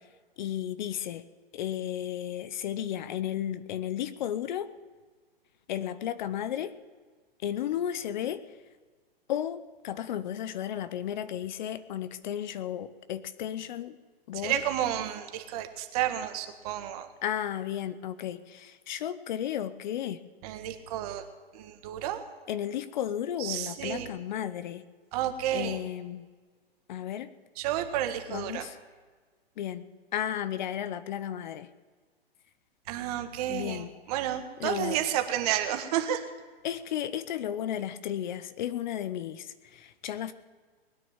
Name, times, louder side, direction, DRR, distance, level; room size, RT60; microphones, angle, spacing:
voice 1, 0.4-1.3 1.5-4.7 5.7-6.8 7.4-8.4 9.3-14.0 14.3-14.6 17.2-20.2 22.5-24.8 25.5-26.2 26.9-27.3 28.3-28.8 29.6-31.7 33.5-33.9 34.6-35.0 36.6-40.3, left 10 dB, 50° left, 15 dB, 0.8 m, -33 dB
voice 2, 14.4-17.1 20.4-21.2 21.5-22.2 23.4-24.1 25.1-25.8 27.6-28.6 32.9-36.2, right 11 dB, 40° right, 6 dB, 1.6 m, -31 dB
20.5 x 9.8 x 7.3 m, 1.5 s
hypercardioid pair, 145°, 30 cm